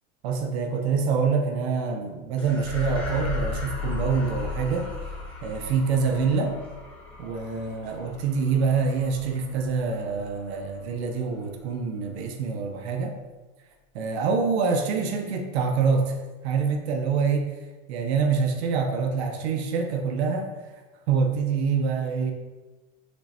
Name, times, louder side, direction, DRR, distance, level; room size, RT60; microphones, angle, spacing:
voice 1, 0.2-4.9 5.4-6.6 7.2-13.2 13.9-16.2 16.4-17.6 17.9-20.5 21.1-22.3, right 5 dB, 75° right, 4 dB, 0.7 m, -25 dB
sound 1, 2.4-11.0, left 4 dB, 5° left, 1.0 m, -36 dB
6.3 x 3.0 x 2.7 m, 1.2 s
supercardioid pair, 145°, 33 cm